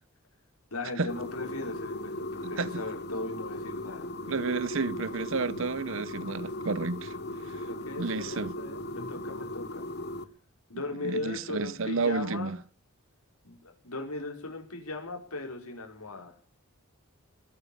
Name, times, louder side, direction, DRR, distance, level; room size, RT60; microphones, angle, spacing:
voice 1, 0.7-4.1 7.1-7.3 7.5-9.9 10.7-12.5 13.4-16.3, left 2 dB, 90° left, 5.1 m, -38 dB
sound 1, 1.1-10.2, left 1 dB, 45° left, 1.2 m, -38 dB
voice 2, 2.4-2.8 4.3-7.1 7.5-7.6 8.0-8.5 11.0-12.6, right 4 dB, 60° right, 0.7 m, -31 dB
20.0 x 9.3 x 7.1 m
head